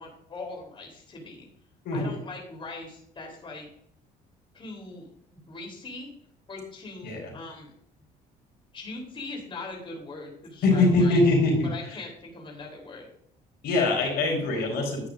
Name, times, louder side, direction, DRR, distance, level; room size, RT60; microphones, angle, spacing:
voice 1, 0.0-1.5 1.9-3.7 4.5-5.1 5.5-6.1 6.5-7.7 8.7-11.2 11.6-13.1, left 3 dB, 30° left, 0 dB, 3.6 m, -40 dB
voice 2, 1.8-2.1 7.0-7.3 10.6-12.0 13.6-15.1, left 2 dB, 70° left, 1 dB, 4.2 m, -23 dB
11.0 x 8.8 x 2.6 m, 0.67 s
cardioid pair, 110°, 17 cm